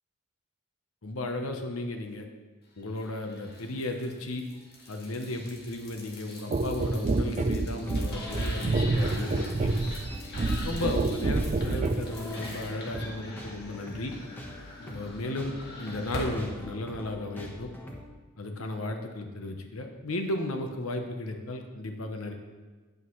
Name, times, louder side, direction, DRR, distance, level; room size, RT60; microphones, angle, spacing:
voice 1, 1.0-2.3 2.8-4.5 4.9-10.0 10.6-14.2 14.8-17.7 18.4-22.3, left 2 dB, 75° left, 4 dB, 0.9 m, -34 dB
sound 1, 2.9-16.6, left 1 dB, 50° left, 1.8 m, -43 dB
sound 2, 6.5-12.1 12.9-13.1, right 2 dB, 35° right, 0.4 m, -28 dB
sound 3, 7.7-18.0, left 1 dB, 10° left, 1.2 m, -44 dB
9.5 x 8.4 x 3.2 m, 1.3 s
head